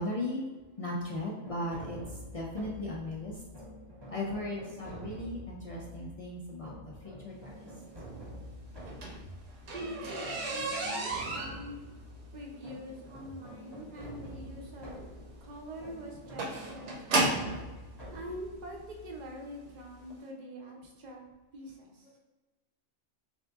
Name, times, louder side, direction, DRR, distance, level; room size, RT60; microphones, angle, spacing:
voice 1, 0.0-3.4 4.1-7.7, left 1 dB, 55° left, -3 dB, 0.4 m, -37 dB
sound 1, 1.4-20.1, equal, 25° right, 1.0 m, -47 dB
sound 2, 8.7-17.6 18.5-18.6 19.2-19.4 19.7-19.8 20.1-20.2, right 2 dB, 75° right, 1.0 m, -34 dB
voice 2, 9.6-11.9 12.3-15.0 15.4-17.6 18.1-21.2 21.5-22.1, equal, 45° right, 0 dB, 0.7 m, -44 dB
3.5 x 2.6 x 3.4 m, 1.2 s
omnidirectional pair, 1.2 m